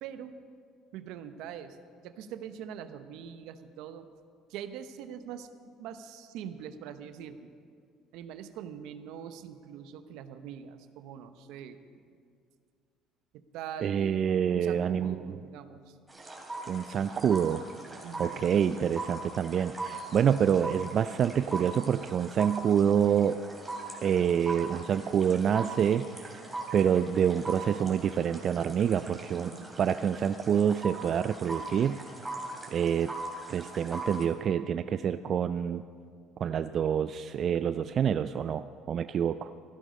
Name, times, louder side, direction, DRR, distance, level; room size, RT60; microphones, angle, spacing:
voice 1, 0.0-0.4 0.9-1.8 2.0-4.1 4.5-7.5 8.1-11.8 13.3-14.2 14.5-16.0 18.0-18.5 29.3-29.7, right 8 dB, 75° right, 10 dB, 0.8 m, -43 dB
voice 2, 13.8-15.3 16.7-17.6 18.2-23.4 24.0-26.4 26.7-29.5 29.8-32.0 32.7-33.1 33.5-35.8 36.4-39.5, right 8 dB, 50° right, 11 dB, 0.3 m, -27 dB
sound 1, 16.1-34.2, right 2 dB, 15° right, 3.2 m, -41 dB
15.5 x 11.5 x 5.4 m, 2.2 s
supercardioid pair, 95°, 0 cm